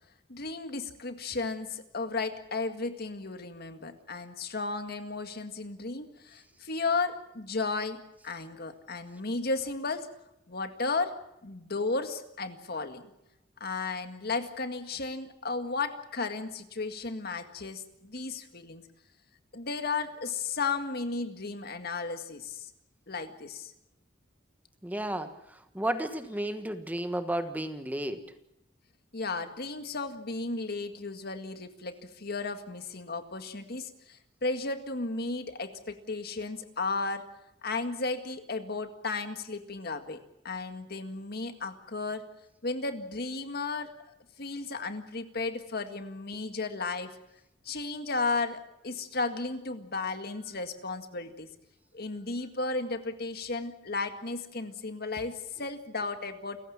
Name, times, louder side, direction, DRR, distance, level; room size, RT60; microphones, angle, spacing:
voice 1, 0.3-10.1 10.5-11.2 11.4-13.1 13.6-18.9 19.5-22.7 23.1-23.7 29.1-37.3 37.6-42.2 42.6-43.9 44.4-47.2 47.7-51.5 51.9-56.6, left 3 dB, 55° left, 8 dB, 1.9 m, -34 dB
voice 2, 24.8-25.4 25.7-28.2, right 1 dB, 10° right, 8 dB, 1.4 m, -32 dB
29.5 x 15.5 x 7.4 m, 0.86 s
head